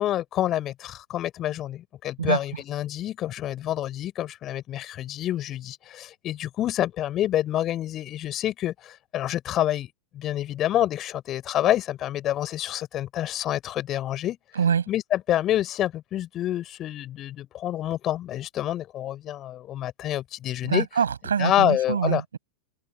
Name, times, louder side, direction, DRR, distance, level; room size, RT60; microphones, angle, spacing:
voice 1, 0.0-14.4 14.9-20.9 21.4-22.2, left 12 dB, 30° left, 4.6 m, -27 dB
voice 2, 20.6-22.4, right 7 dB, 70° right, 7.9 m, -24 dB
open air
figure-of-eight pair, 90°, 0 cm